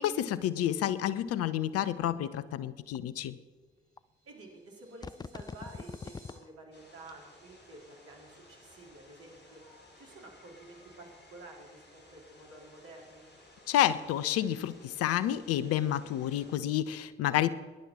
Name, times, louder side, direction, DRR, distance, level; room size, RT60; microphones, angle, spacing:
voice 1, 0.0-3.4 13.7-17.5, left 11 dB, 55° left, 15 dB, 0.7 m, -29 dB
sound 1, 2.0-2.1 2.9-3.0 4.0-4.1 5.0-6.4 7.0-7.1, left 4 dB, 15° left, 0.4 m, -42 dB
sound 2, 3.6-6.3, equal, 85° left, 6.0 m, -61 dB
voice 2, 4.2-9.6 10.0-13.2, right 2 dB, 50° right, 0 dB, 4.0 m, -51 dB
sound 3, 6.7-16.5, left 1 dB, 35° left, 4.4 m, -58 dB
21.0 x 11.0 x 4.3 m, 1.4 s
figure-of-eight pair, 45°, 29 cm